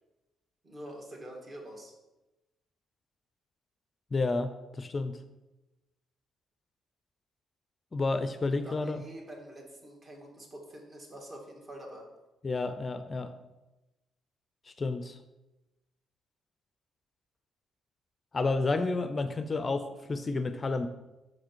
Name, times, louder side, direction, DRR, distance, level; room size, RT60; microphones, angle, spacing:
voice 1, 0.6-1.9 8.5-12.1, right 1 dB, 40° right, -1 dB, 1.9 m, -46 dB
voice 2, 4.1-5.1 7.9-9.0 12.4-13.3 14.8-15.2 18.3-20.9, left 3 dB, 30° left, 10 dB, 0.4 m, -30 dB
5.9 x 4.9 x 4.5 m, 1.0 s
cardioid pair, 90°, 0 cm